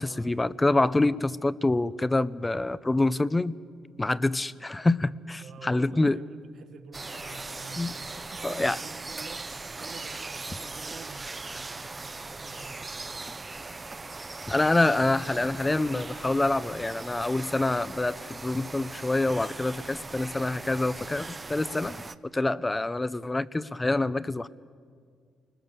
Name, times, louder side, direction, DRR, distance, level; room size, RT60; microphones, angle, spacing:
voice 1, 0.0-3.6 4.0-6.2 7.8-8.0 8.4-8.8 14.5-22.0 22.3-24.5, left 2 dB, 15° left, 17 dB, 0.7 m, -26 dB
voice 2, 5.4-13.3, right 5 dB, 65° right, 8 dB, 1.6 m, -48 dB
sound 1, 6.9-22.1, right 3 dB, 25° right, 0.7 m, -39 dB
Keyboard (musical), 7.1-11.5, left 7 dB, 85° left, 4.0 m, -58 dB
30.0 x 20.5 x 6.8 m, 2.1 s
cardioid pair, 90°, 0 cm